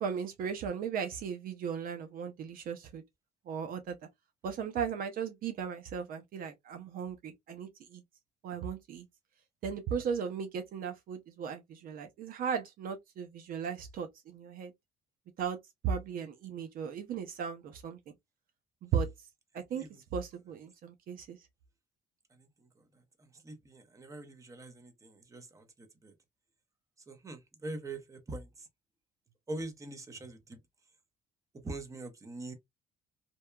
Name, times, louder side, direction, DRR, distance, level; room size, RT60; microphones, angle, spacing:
voice 1, 0.0-3.0 3.5-4.0 4.4-8.0 8.4-9.1 9.6-14.7 15.4-15.6 15.8-18.0 18.8-19.1 19.5-19.8 20.1-21.4, right 7 dB, 60° right, 0.5 m, -36 dB
voice 2, 23.4-25.6 26.0-26.1 27.1-28.4 29.5-30.6 31.6-32.5, right 2 dB, 20° right, 0.7 m, -43 dB
2.7 x 2.2 x 2.3 m
cardioid pair, 110°, 17 cm